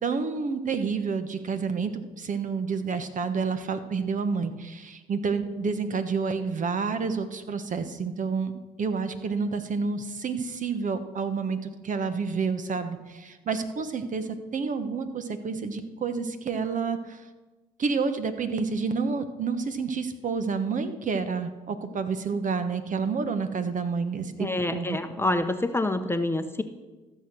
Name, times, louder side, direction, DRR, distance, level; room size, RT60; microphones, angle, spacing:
voice 1, 0.0-8.5 8.8-17.2 17.8-25.0, right 5 dB, 45° right, 9 dB, 1.2 m, -29 dB
voice 2, 24.4-26.6, left 2 dB, 15° left, 8 dB, 0.9 m, -27 dB
14.0 x 6.8 x 6.2 m, 1.2 s
hypercardioid pair, 60°, 18 cm